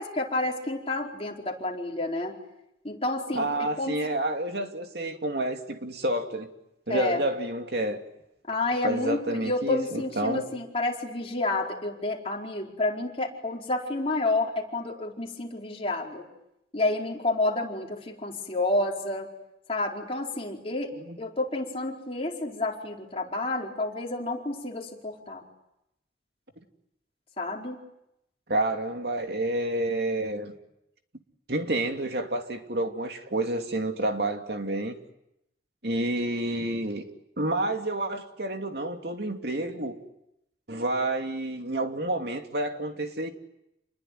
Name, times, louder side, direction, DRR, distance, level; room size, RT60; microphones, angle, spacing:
voice 1, 0.0-2.3 2.8-4.0 6.9-7.2 8.5-16.3 16.7-19.3 19.7-25.4 27.4-27.8, left 2 dB, 35° left, 4.6 m, -30 dB
voice 2, 3.3-6.5 6.9-8.0 8.8-10.4 21.0-21.2 28.5-30.5 31.5-35.0 35.8-37.0 37.4-40.0 40.7-43.3, right 1 dB, 65° right, 2.8 m, -29 dB
29.0 x 21.5 x 9.4 m
head